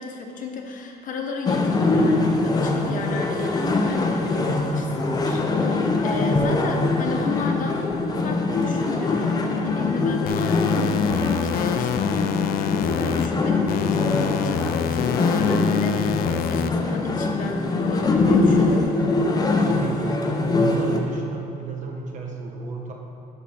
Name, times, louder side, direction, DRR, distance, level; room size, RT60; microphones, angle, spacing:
voice 1, 0.0-7.8 8.1-19.0, left 3 dB, 60° left, 2 dB, 1.2 m, -33 dB
sound 1, 1.5-21.0, left 3 dB, 25° left, 0.9 m, -23 dB
sound 2, 10.3-13.3 13.7-16.7, left 9 dB, 75° left, 0.4 m, -26 dB
voice 2, 19.6-22.9, right 3 dB, 55° right, 0 dB, 1.4 m, -31 dB
11.0 x 5.7 x 4.4 m, 2.7 s
cardioid pair, 110°, 15 cm